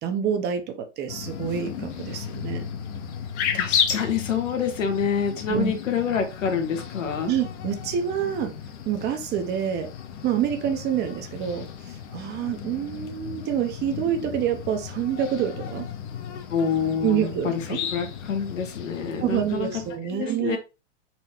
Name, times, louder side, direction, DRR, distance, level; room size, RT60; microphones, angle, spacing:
voice 1, 0.0-2.7 5.5-5.7 7.3-8.5 8.9-9.9 10.2-15.9 17.0-17.8 19.2-20.6, right 9 dB, 25° right, 0.8 m, -27 dB
sound 1, 1.1-20.0, left 8 dB, 60° left, 1.1 m, -34 dB
voice 2, 3.5-7.3 16.5-17.6 17.9-19.8 20.1-20.6, left 6 dB, 85° left, 1.4 m, -27 dB
4.2 x 2.9 x 4.3 m
hypercardioid pair, 130°, 37 cm